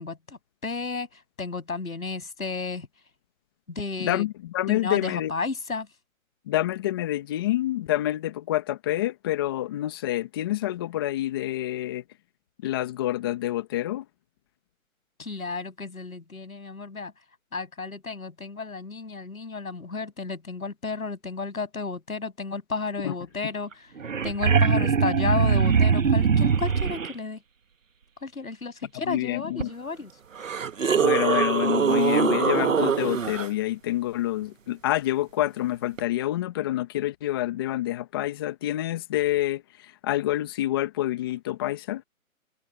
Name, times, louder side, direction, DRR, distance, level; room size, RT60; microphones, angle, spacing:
voice 1, 0.0-2.9 3.7-4.3 4.7-5.9 15.2-17.1 17.5-23.9 24.2-27.4 28.2-30.1, left 4 dB, 85° left, 7.3 m, -32 dB
voice 2, 4.0-5.3 6.5-12.0 12.6-14.0 23.0-23.1 29.1-29.7 30.9-42.0, left 14 dB, 15° left, 1.3 m, -27 dB
sound 1, 23.7-23.8 24.0-27.1 29.6-29.7 30.4-33.5 36.0-36.1, right 6 dB, 65° right, 1.5 m, -22 dB
hypercardioid pair, 160°, 41 cm